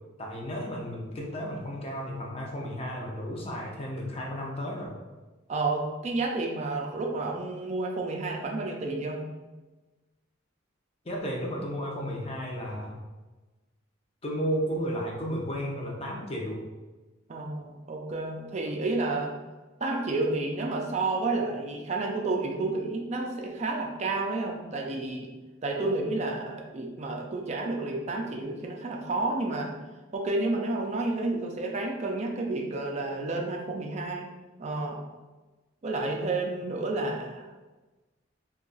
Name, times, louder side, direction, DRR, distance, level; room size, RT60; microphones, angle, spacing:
voice 1, 0.2-5.0 11.0-13.0 14.2-16.6, equal, 30° left, -2 dB, 0.6 m, -33 dB
voice 2, 5.5-9.3 17.3-19.3 19.8-25.3 25.6-29.7 30.1-34.3 34.6-35.0 35.8-37.5, right 2 dB, 35° right, 0 dB, 0.4 m, -30 dB
2.8 x 2.3 x 3.9 m, 1.2 s
head